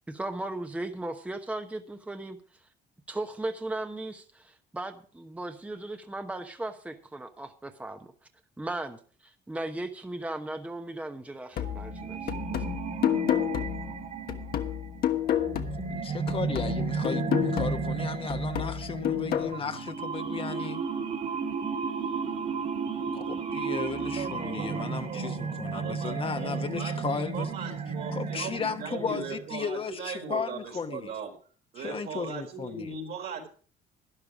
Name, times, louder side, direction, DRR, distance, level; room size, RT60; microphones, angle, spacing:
voice 1, 0.1-2.4 3.1-8.1 8.6-9.0 9.5-12.6, right 2 dB, 10° right, 1.0 m, -37 dB
sound 1, 11.6-16.0 16.3-19.6, left 11 dB, 65° left, 1.3 m, -30 dB
sound 2, 11.6-29.5, right 5 dB, 45° right, 3.1 m, -33 dB
voice 2, 15.7-20.8 23.1-27.5 28.1-31.1 31.8-32.9, left 5 dB, 30° left, 1.1 m, -35 dB
voice 3, 24.0-31.3 31.7-33.5, right 5 dB, 70° right, 4.1 m, -39 dB
12.5 x 10.5 x 5.0 m
cardioid pair, 110°, 17 cm